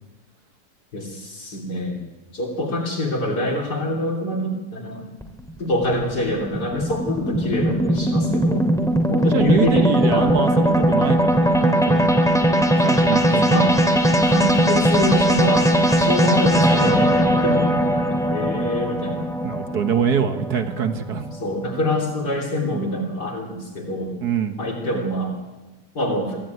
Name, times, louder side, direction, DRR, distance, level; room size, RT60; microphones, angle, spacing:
voice 1, 0.9-2.0 2.3-5.1 5.6-8.7 9.1-10.7 13.1-13.7 14.3-17.7 18.1-19.3 21.3-24.2 24.6-25.4 25.9-26.4, left 1 dB, 65° left, 0 dB, 3.8 m, -25 dB
sound 1, 5.2-21.6, equal, ahead, 2.7 m, -19 dB
voice 2, 9.2-12.1 12.8-13.8 19.4-21.3 24.2-24.6, right 7 dB, 60° right, 7 dB, 1.9 m, -24 dB
23.5 x 16.0 x 9.4 m, 1.2 s
omnidirectional pair, 1.9 m